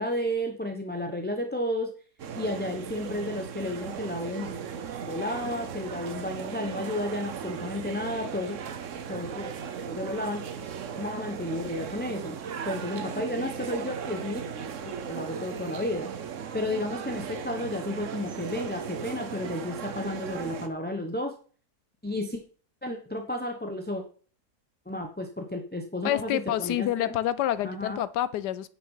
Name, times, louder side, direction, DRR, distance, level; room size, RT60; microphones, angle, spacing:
voice 1, 0.0-1.9 2.3-4.6 5.1-8.6 9.1-9.5 9.9-10.4 11.0-12.4 12.6-14.4 14.8-16.1 16.5-21.3 22.0-22.4 22.8-24.0 24.9-27.1 27.6-28.0, left 1 dB, 10° left, 3 dB, 0.8 m, -32 dB
sound 1, 2.2-20.7, right 7 dB, 55° right, 1.1 m, -37 dB
voice 2, 26.0-28.7, left 12 dB, 85° left, 16 dB, 1.3 m, -28 dB
9.7 x 6.4 x 5.6 m, 0.41 s
omnidirectional pair, 1.7 m